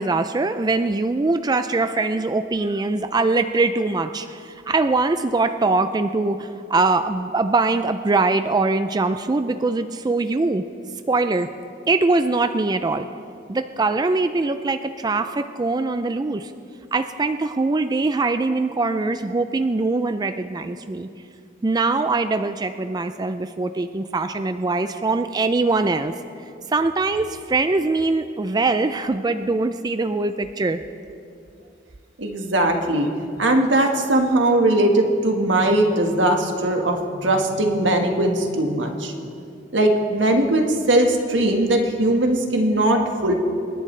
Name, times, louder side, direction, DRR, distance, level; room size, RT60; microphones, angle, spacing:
voice 1, 0.0-10.6 11.1-11.5 11.9-13.1 13.5-16.5 16.9-21.1 21.6-26.1 26.7-30.8, right 3 dB, 20° right, 9 dB, 0.4 m, -22 dB
voice 2, 32.2-33.1 33.4-39.1 39.7-43.3, right 1 dB, 80° right, 3 dB, 1.6 m, -20 dB
27.5 x 11.0 x 3.3 m, 2.5 s
head